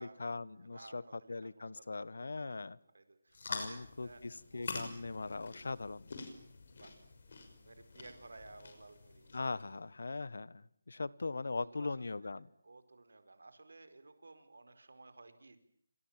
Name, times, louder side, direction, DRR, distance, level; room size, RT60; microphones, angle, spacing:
voice 1, 0.0-2.8 3.5-6.1 9.3-12.5, left 3 dB, 70° left, 20 dB, 1.3 m, -40 dB
voice 2, 1.2-1.8 2.2-2.6 2.9-4.2 4.5-4.7 6.8-7.0 7.6-9.3 10.9-11.0 11.4-11.9 12.6-15.6, right 3 dB, 85° right, 10 dB, 4.7 m, -56 dB
sound 1, 3.3-9.6, left 3 dB, 45° left, 5.9 m, -47 dB
28.5 x 26.0 x 7.5 m, 0.64 s
hypercardioid pair, 175°, 0 cm